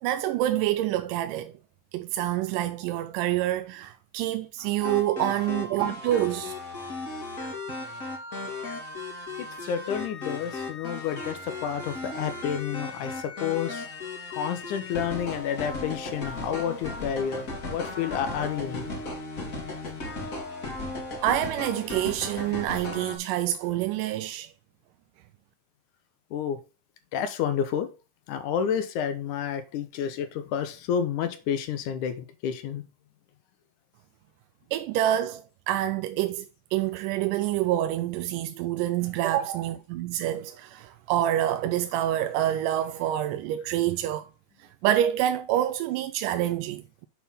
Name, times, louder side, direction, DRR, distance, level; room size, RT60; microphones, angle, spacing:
voice 1, 0.0-1.5 1.9-6.8 21.2-24.5 34.7-44.3 44.6-47.1, right 12 dB, 85° right, 2.1 m, -27 dB
sound 1, 4.8-23.2, left 2 dB, 30° left, 1.8 m, -36 dB
voice 2, 9.4-13.9 14.3-18.9 26.3-26.6 27.1-27.9 28.3-32.8, left 8 dB, 75° left, 2.2 m, -30 dB
7.3 x 4.3 x 5.5 m
omnidirectional pair, 3.7 m